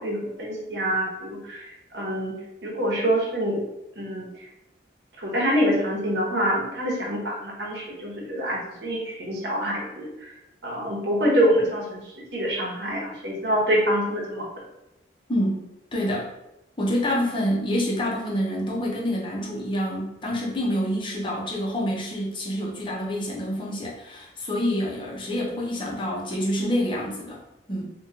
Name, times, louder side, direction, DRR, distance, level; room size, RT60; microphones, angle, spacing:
voice 1, 0.0-1.6 1.9-2.4 2.6-3.6 4.0-4.3 5.2-10.1 10.6-14.4, equal, 70° right, -3 dB, 1.0 m, -25 dB
voice 2, 15.3-15.7 15.9-16.3 16.8-27.4 27.7-27.9, equal, 30° left, -3 dB, 0.6 m, -27 dB
3.0 x 2.3 x 3.6 m, 0.91 s
head